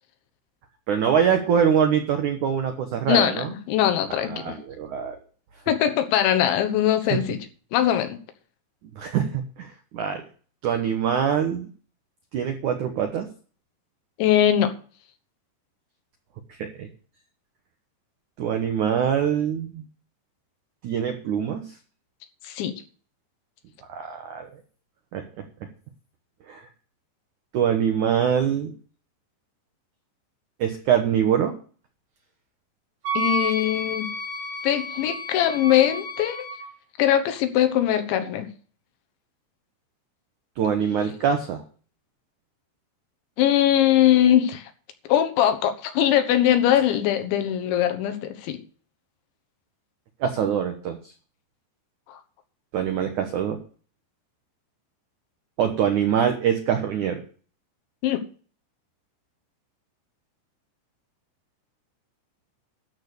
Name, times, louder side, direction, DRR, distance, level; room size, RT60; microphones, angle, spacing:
voice 1, 0.9-3.5 4.1-5.2 7.1-7.2 9.0-10.2 10.6-11.7 12.3-13.3 16.5-16.9 18.4-19.8 20.8-21.7 23.9-24.5 25.1-25.4 26.5-26.6 27.5-28.7 30.6-31.5 40.6-41.6 50.2-51.1 52.7-53.6 55.6-57.2, right 8 dB, 85° right, 5 dB, 1.7 m, -24 dB
voice 2, 3.1-4.6 5.7-7.4 7.7-8.2 14.2-14.7 22.4-22.7 33.2-34.1 34.6-36.5 37.0-38.5 43.4-44.7 45.1-48.6 52.1-52.2 58.0-58.2, left 11 dB, 80° left, 8 dB, 3.6 m, -21 dB
Wind instrument woodwind instrument, 33.0-36.7, equal, 40° right, 4.0 m, -30 dB
13.0 x 6.6 x 6.8 m, 0.42 s
omnidirectional pair, 5.2 m